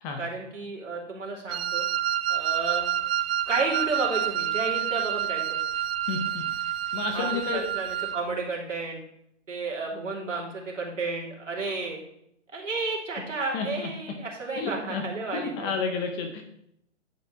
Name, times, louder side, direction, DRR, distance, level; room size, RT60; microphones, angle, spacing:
voice 1, 0.2-1.8 2.3-2.9 3.4-5.6 7.1-9.0 9.5-12.0 12.5-15.7, right 3 dB, 85° right, -2 dB, 3.0 m, -32 dB
Wind instrument woodwind instrument, 1.5-8.2, right 10 dB, 55° right, 0.5 m, -28 dB
voice 2, 6.1-6.6 6.9-7.6 13.5-13.9 14.6-15.0 15.3-16.4, left 5 dB, 15° left, 5 dB, 0.5 m, -31 dB
10.5 x 4.6 x 4.6 m, 0.74 s
hypercardioid pair, 135°, 37 cm